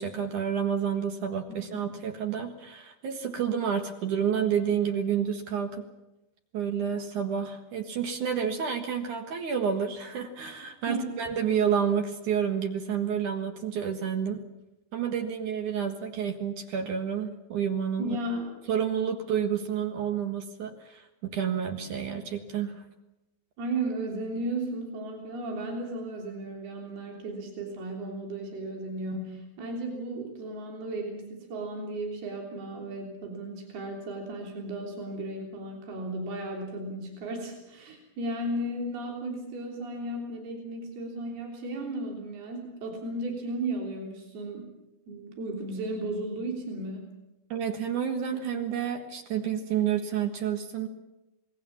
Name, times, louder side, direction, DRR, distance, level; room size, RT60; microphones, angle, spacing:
voice 1, 0.0-5.9 6.5-14.4 14.9-18.2 18.7-22.7 47.5-50.9, right 8 dB, 60° right, 5 dB, 2.8 m, -29 dB
voice 2, 18.0-18.5 23.6-44.7 45.1-47.1, right 1 dB, 80° right, 1 dB, 5.4 m, -35 dB
27.0 x 20.0 x 7.3 m, 0.96 s
omnidirectional pair, 4.4 m